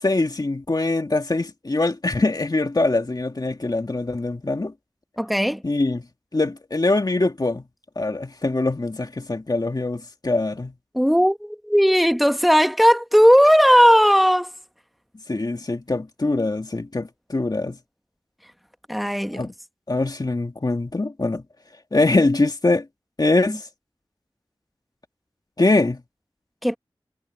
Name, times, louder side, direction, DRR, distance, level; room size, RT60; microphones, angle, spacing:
voice 1, 0.0-4.7 5.6-6.0 6.3-7.6 8.0-10.7 15.3-17.8 19.4-19.5 19.9-21.4 21.9-22.9 23.2-23.7 25.6-26.0, left 2 dB, 45° left, 2.2 m, -23 dB
voice 2, 5.2-5.6 10.9-14.5 18.9-19.5 26.6-26.8, equal, ahead, 1.5 m, -16 dB
wide cardioid pair, 50°, 9 cm